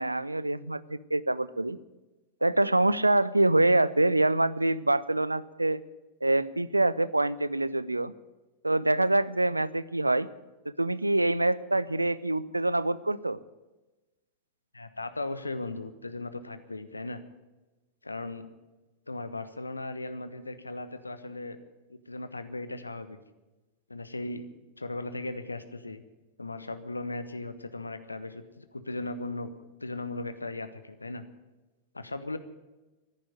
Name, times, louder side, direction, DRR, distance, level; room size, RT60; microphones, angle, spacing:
voice 1, 0.0-1.8 2.4-5.8 6.2-8.1 8.6-10.3 10.8-13.4, right 2 dB, 85° right, 19 dB, 0.5 m, -25 dB
voice 2, 14.7-17.2 18.0-18.5 19.1-21.6 21.9-23.2 23.9-24.5 24.8-26.0 26.4-29.5 29.8-31.2 31.9-32.4, left 2 dB, 80° left, 11 dB, 1.1 m, -37 dB
14.0 x 10.5 x 9.3 m, 1.1 s
figure-of-eight pair, 90°, 0 cm